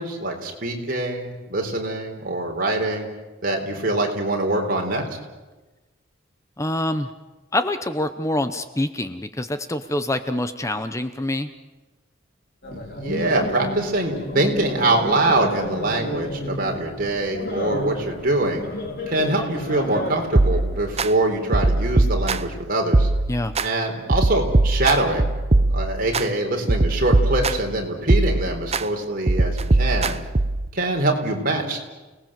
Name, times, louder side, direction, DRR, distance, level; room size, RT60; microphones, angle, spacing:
voice 1, 0.0-3.1 3.4-5.0 12.7-18.6 19.1-23.1 23.6-25.3 25.6-30.2 30.7-31.8, right 2 dB, 50° right, 2 dB, 4.0 m, -24 dB
voice 2, 6.6-7.1 7.5-11.5 23.3-23.5, left 1 dB, 15° left, 10 dB, 0.8 m, -25 dB
sound 1, 12.6-21.5, left 1 dB, 55° left, 3.9 m, -32 dB
sound 2, 20.4-21.1 21.5-22.6 22.9-23.7 24.1-26.3 26.7-27.7 28.1-28.8 29.3-30.7, right 2 dB, 35° right, 0.7 m, -20 dB
30.0 x 19.0 x 7.5 m, 1.2 s
head